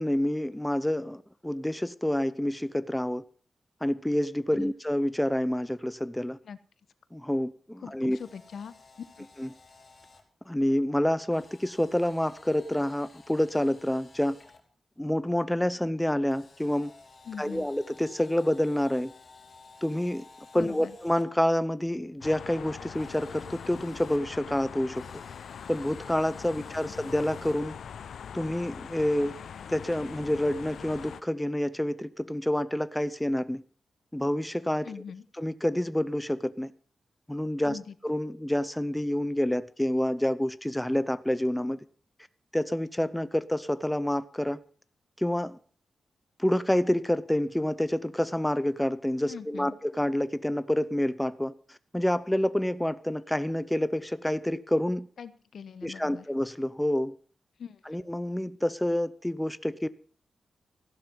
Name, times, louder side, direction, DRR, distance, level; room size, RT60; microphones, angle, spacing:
voice 1, 0.0-3.2 3.8-6.4 7.1-8.2 9.4-9.5 10.5-14.4 15.0-16.9 17.4-19.1 19.8-20.2 20.5-25.0 25.7-27.7 28.3-29.4 29.7-33.6 34.1-34.9 35.4-36.7 37.3-41.8 42.5-44.6 45.2-45.6 46.4-55.1 55.8-57.1 57.9-59.9, left 1 dB, 5° left, 0.6 m, -28 dB
voice 2, 7.8-8.7 9.2-9.3 17.2-17.7 20.5-21.0 26.5-26.7 34.8-35.2 37.6-37.9 49.2-49.8 55.2-56.2 57.6-58.0, left 7 dB, 70° left, 1.1 m, -42 dB
Camera, 8.0-10.2 11.3-14.6 16.3-21.2 22.9-24.2 24.9-27.6, left 3 dB, 40° left, 3.3 m, -54 dB
sound 1, 22.2-31.2, left 7 dB, 85° left, 0.7 m, -42 dB
15.0 x 12.0 x 5.5 m
wide cardioid pair, 150°, 0 cm